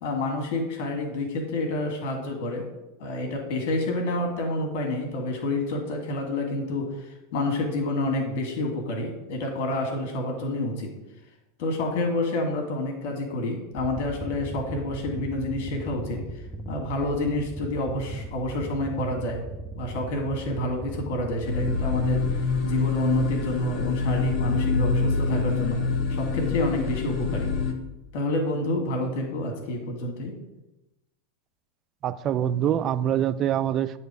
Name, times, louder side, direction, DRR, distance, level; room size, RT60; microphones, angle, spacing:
voice 1, 0.0-2.7 3.0-10.9 11.6-16.2 16.7-19.4 19.7-22.2 22.6-25.8 26.1-27.5 28.1-30.3, left 2 dB, 55° left, 2 dB, 1.8 m, -28 dB
sound 1, 13.7-22.5, right 2 dB, 5° left, 0.8 m, -38 dB
sound 2, 21.4-27.7, left 4 dB, 40° left, 1.1 m, -26 dB
voice 2, 32.0-34.0, right 10 dB, 40° right, 14 dB, 0.3 m, -25 dB
9.3 x 3.2 x 4.7 m, 0.98 s
figure-of-eight pair, 85°, 0 cm